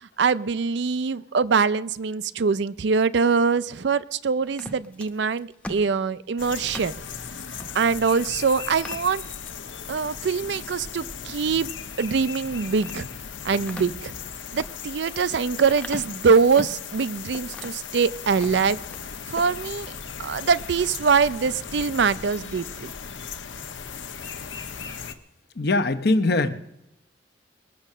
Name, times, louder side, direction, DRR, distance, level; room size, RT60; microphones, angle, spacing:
voice 1, 0.2-6.9 7.5-9.2 9.9-13.1 13.4-14.1 14.5-18.8 19.3-19.9 20.2-22.9, right 5 dB, 65° right, 17 dB, 0.4 m, -23 dB
sound 1, 4.5-7.0 7.5-7.7 8.1-8.2 8.7-9.6 10.1-10.5 12.3-13.1 13.5-16.9 17.3-17.9 18.3-19.0 19.3-19.6, left 1 dB, 5° left, 0.8 m, -40 dB
sound 2, 6.4-25.1, left 6 dB, 80° left, 1.1 m, -37 dB
voice 2, 25.6-26.6, left 2 dB, 55° left, 9 dB, 0.8 m, -22 dB
20.5 x 7.2 x 6.6 m, 0.87 s
head